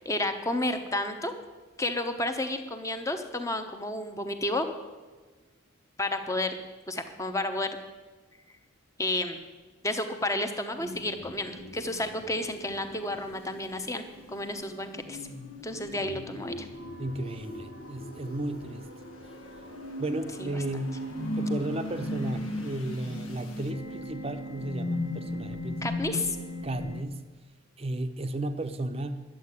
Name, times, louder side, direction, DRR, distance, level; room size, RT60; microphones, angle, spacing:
voice 1, 0.0-1.3 1.8-4.7 6.0-6.6 6.9-7.8 9.0-9.4 9.8-15.2 15.6-16.7 20.4-20.6 25.8-26.4, left 1 dB, 15° left, 7 dB, 0.9 m, -31 dB
sound 1, 10.8-27.0, left 1 dB, 80° left, 1.4 m, -38 dB
voice 2, 17.0-18.9 20.0-21.0 21.3-26.1 26.6-27.2 27.8-29.2, right 1 dB, 30° right, 8 dB, 0.7 m, -34 dB
11.0 x 7.6 x 9.6 m, 1.3 s
head